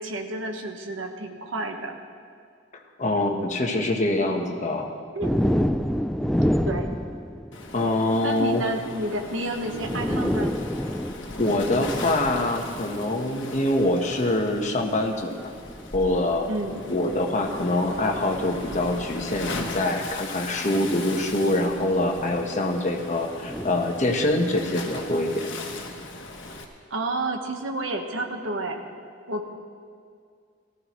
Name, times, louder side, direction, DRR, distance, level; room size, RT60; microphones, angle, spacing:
voice 1, 0.0-2.0 5.1-5.3 6.6-7.0 8.2-10.5 16.5-16.8 26.9-28.8 29.3-29.5, right 1 dB, 85° right, 3 dB, 1.3 m, -30 dB
voice 2, 3.0-4.9 7.7-8.6 11.4-15.5 15.9-16.5 16.9-25.5, left 1 dB, 40° left, 2 dB, 1.3 m, -24 dB
sound 1, 5.2-7.9 9.2-9.3 9.6-13.2 14.1-14.4 15.5-18.5 20.0-20.1 21.8-22.6 23.4-24.8, equal, ahead, 0.3 m, -29 dB
Waves surf, 7.5-26.6, left 2 dB, 65° left, 1.4 m, -39 dB
18.5 x 14.0 x 3.1 m, 2.2 s
head